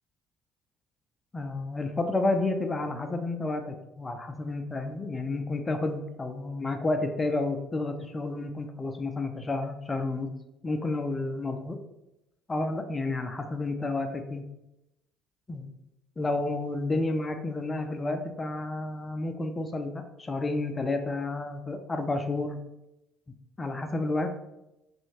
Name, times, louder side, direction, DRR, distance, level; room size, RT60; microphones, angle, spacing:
voice 1, 1.3-10.3 10.6-11.8 12.5-14.4 15.5-15.7 16.2-22.6 23.6-24.4, left 2 dB, 25° left, 6 dB, 0.4 m, -30 dB
2.7 x 2.4 x 2.9 m, 0.90 s
figure-of-eight pair, 55°, 0 cm